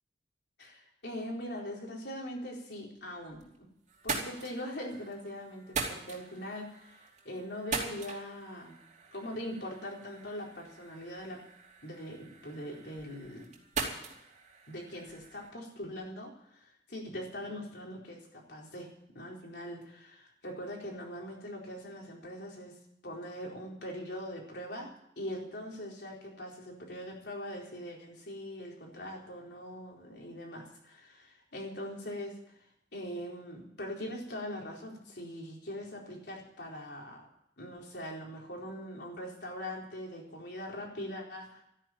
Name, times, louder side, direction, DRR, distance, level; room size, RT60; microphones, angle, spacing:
voice 1, 0.6-3.4 4.0-8.8 9.1-11.4 11.8-13.4 14.7-18.9 19.1-22.7 23.0-24.9 25.2-32.4 32.9-37.2 37.6-41.6, equal, 65° left, -1 dB, 4.2 m, -42 dB
sound 1, 3.0-3.6 3.9-15.5, right 4 dB, 40° right, 2.9 m, -41 dB
13.5 x 9.9 x 9.2 m, 0.78 s
head